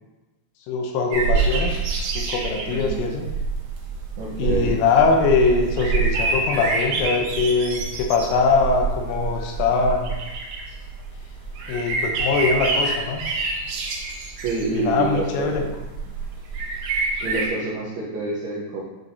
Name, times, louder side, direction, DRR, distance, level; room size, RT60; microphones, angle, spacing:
voice 1, 0.7-1.8 2.2-3.3 4.4-10.2 11.7-13.2 14.7-15.6, left 4 dB, 80° left, 2 dB, 3.2 m, -22 dB
sound 1, 1.1-17.5, right 4 dB, 75° right, 2.4 m, -27 dB
voice 2, 2.7-3.1 4.2-4.8 14.4-15.7 17.2-18.8, right 3 dB, 90° right, -5 dB, 2.1 m, -27 dB
10.5 x 4.1 x 2.7 m, 1.1 s
omnidirectional pair, 5.7 m